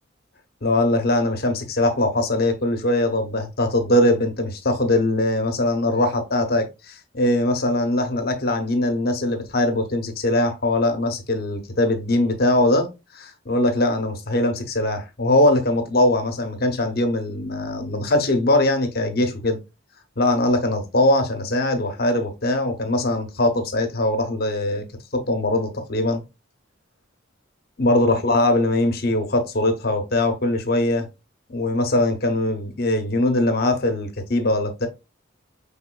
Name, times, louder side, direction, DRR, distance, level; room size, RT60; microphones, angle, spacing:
voice 1, 0.6-19.6 20.2-24.8 25.1-26.2 27.8-31.1 31.5-34.9, left 1 dB, 50° left, 0.8 m, -21 dB
5.4 x 3.5 x 2.2 m
head